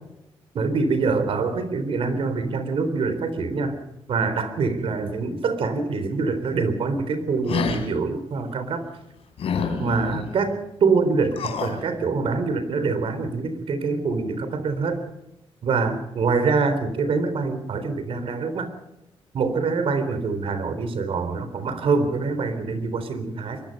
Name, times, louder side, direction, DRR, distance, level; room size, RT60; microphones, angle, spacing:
voice 1, 0.5-3.7 4.1-8.8 9.8-15.0 15.6-18.7 19.3-23.6, right 4 dB, 65° right, 10 dB, 3.7 m, -25 dB
sound 1, 7.5-7.9 9.4-10.2 11.3-11.8, left 6 dB, 80° left, 3.8 m, -27 dB
23.5 x 21.0 x 5.4 m, 0.91 s
wide cardioid pair, 135°, 10 cm